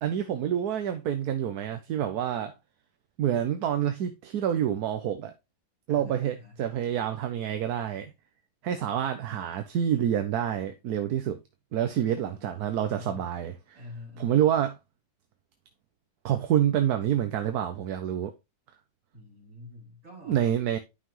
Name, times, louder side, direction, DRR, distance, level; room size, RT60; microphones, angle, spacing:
voice 1, 0.0-2.5 3.2-5.3 5.9-8.1 8.6-11.4 11.7-13.8 14.2-14.7 16.2-18.3 20.3-20.8, right 10 dB, 65° right, 1.2 m, -27 dB
voice 2, 5.9-6.6 11.8-13.3 13.8-14.5 19.1-20.4, left 3 dB, 45° right, 4.1 m, -47 dB
10.0 x 5.7 x 3.1 m
omnidirectional pair, 1.9 m